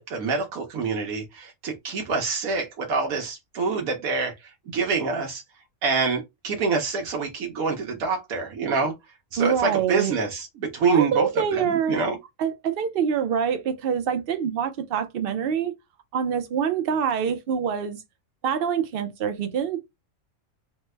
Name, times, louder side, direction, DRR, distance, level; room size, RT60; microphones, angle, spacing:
voice 1, 0.0-4.3 4.7-5.4 5.8-8.9 9.3-12.2, right 4 dB, 80° right, 1.2 m, -26 dB
voice 2, 9.4-10.1 10.9-12.0 12.4-15.7 16.1-18.0 18.4-19.8, right 7 dB, 60° right, 0.6 m, -25 dB
3.2 x 2.1 x 3.1 m
omnidirectional pair, 1.5 m